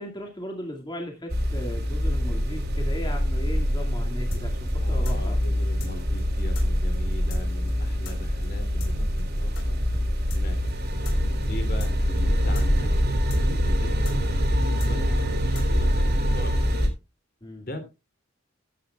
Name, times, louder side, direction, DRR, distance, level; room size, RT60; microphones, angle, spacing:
voice 1, 0.0-5.4 17.4-17.7, equal, 25° left, 2.2 m, -37 dB
sound 1, 1.3-16.9, equal, 55° right, 3.3 m, -24 dB
sound 2, 4.3-9.6 9.9-10.0 10.3-16.0, left 2 dB, 80° left, 4.0 m, -41 dB
voice 2, 4.7-9.8 10.3-10.6 11.4-16.9 17.6-17.8, left 1 dB, 50° left, 2.9 m, -40 dB
14.5 x 10.0 x 2.3 m
head